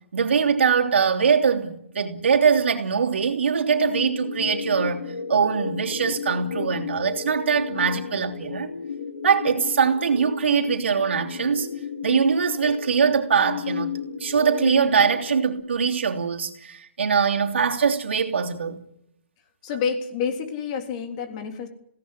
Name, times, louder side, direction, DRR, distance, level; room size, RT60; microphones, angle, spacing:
voice 1, 0.1-8.7 9.2-11.7 12.0-18.8, right 6 dB, 75° right, 3.1 m, -22 dB
sound 1, 3.7-15.6, left 6 dB, 75° left, 4.1 m, -33 dB
voice 2, 19.6-21.7, left 6 dB, 35° left, 3.6 m, -28 dB
21.5 x 17.5 x 10.0 m
hypercardioid pair, 150°, 6 cm